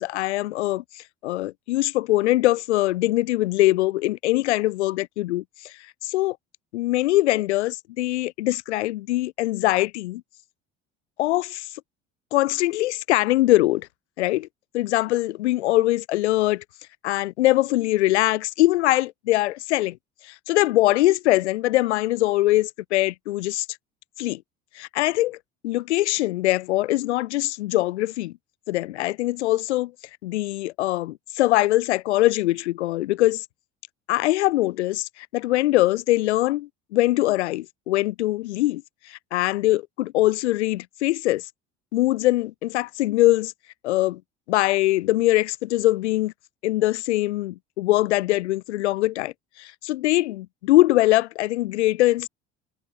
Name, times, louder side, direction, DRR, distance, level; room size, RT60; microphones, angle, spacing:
voice 1, 0.0-5.7 6.0-6.4 6.7-10.2 11.2-11.7 12.3-13.9 14.2-14.5 14.7-16.6 17.0-20.0 20.2-23.7 24.2-24.4 24.8-25.4 25.6-28.3 28.7-29.9 30.2-33.4 34.1-41.5 41.9-43.5 43.8-44.2 44.5-46.3 46.6-52.3, left 17 dB, 75° left, 5.2 m, -22 dB
figure-of-eight pair, 60°, 34 cm